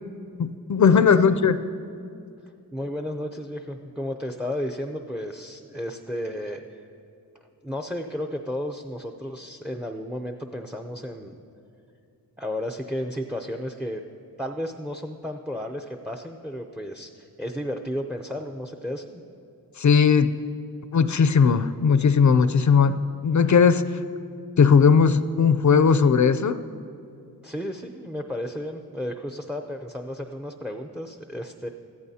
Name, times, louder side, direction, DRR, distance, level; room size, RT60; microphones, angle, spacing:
voice 1, 0.4-1.6 19.8-20.3 20.9-23.9 24.6-26.6, left 6 dB, 50° left, 12 dB, 0.5 m, -18 dB
voice 2, 1.0-1.4 2.7-6.8 7.6-11.4 12.4-14.0 14.4-19.2 27.4-31.7, equal, 5° right, 4 dB, 0.5 m, -33 dB
20.5 x 14.5 x 2.8 m, 2.6 s
wide cardioid pair, 90°, 38 cm